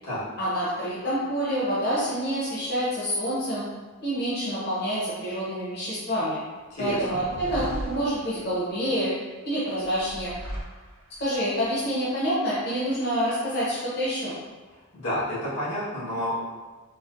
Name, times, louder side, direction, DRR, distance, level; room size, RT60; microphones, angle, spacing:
voice 1, 0.4-3.6 4.0-6.4 6.8-9.1 9.4-10.4 11.2-14.4, equal, 50° left, -9 dB, 0.8 m, -27 dB
voice 2, 6.7-7.2 14.9-16.4, left 1 dB, 90° left, -9 dB, 1.3 m, -30 dB
sound 1, 6.9-8.8 9.8-11.3, right 1 dB, 70° right, 0.6 m, -37 dB
4.1 x 2.0 x 2.4 m, 1.3 s
head